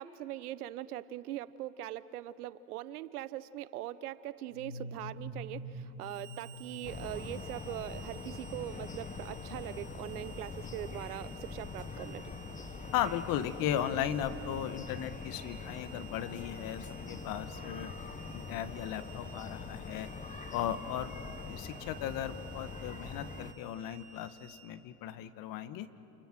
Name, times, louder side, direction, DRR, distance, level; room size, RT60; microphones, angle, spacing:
voice 1, 0.0-12.3, right 13 dB, 70° right, 16 dB, 1.1 m, -41 dB
sound 1, 4.5-8.2, equal, 70° left, 4.0 m, -45 dB
Harmonica, 6.0-24.7, right 11 dB, 35° right, 6.7 m, -55 dB
sound 2, 6.8-23.5, left 4 dB, 15° left, 1.1 m, -44 dB
voice 2, 12.9-17.9 18.3-20.1 20.5-21.1 21.5-25.9, left 10 dB, 45° left, 12 dB, 1.5 m, -36 dB
29.5 x 28.0 x 6.3 m, 2.8 s
hypercardioid pair, 95°, 46 cm